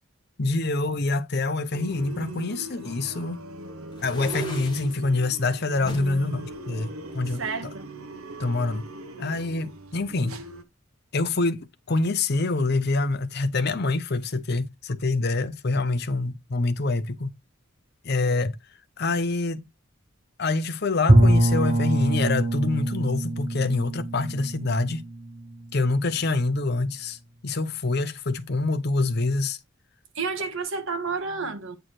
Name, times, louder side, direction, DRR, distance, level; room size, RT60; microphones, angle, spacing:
voice 1, 0.4-3.4 4.0-7.4 8.4-8.9 9.2-10.4 11.1-17.3 18.0-18.6 19.0-19.7 20.4-25.1 25.7-27.2 27.4-29.6, left 3 dB, 50° left, 0.7 m, -26 dB
sound 1, 1.7-10.6, right 1 dB, 90° right, 1.1 m, -39 dB
sound 2, 3.9-5.0 5.9-6.2 6.8-7.8, left 2 dB, 20° left, 1.6 m, -40 dB
voice 2, 7.4-7.9 30.1-31.8, right 4 dB, 65° right, 1.5 m, -30 dB
Bowed string instrument, 21.1-25.9, right 1 dB, 30° right, 1.0 m, -23 dB
8.8 x 4.6 x 3.2 m
head